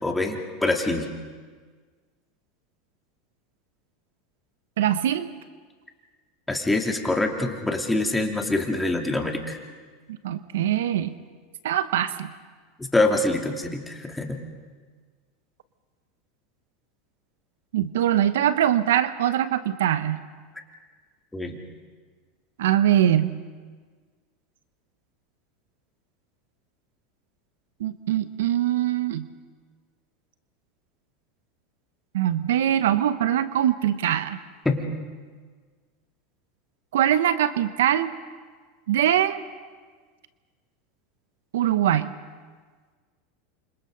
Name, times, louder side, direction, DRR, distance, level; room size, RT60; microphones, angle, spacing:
voice 1, 0.0-1.1 6.5-9.6 12.9-14.4 21.3-21.6 34.6-34.8, left 2 dB, 10° left, 2 dB, 2.9 m, -25 dB
voice 2, 4.8-5.3 10.1-11.2 11.6-12.3 17.7-20.2 22.6-23.4 27.8-29.3 32.1-34.4 36.9-38.1 38.9-39.4 41.5-42.2, right 11 dB, 80° right, 13 dB, 0.8 m, -22 dB
29.0 x 26.0 x 4.0 m, 1.5 s
hypercardioid pair, 100°, 0 cm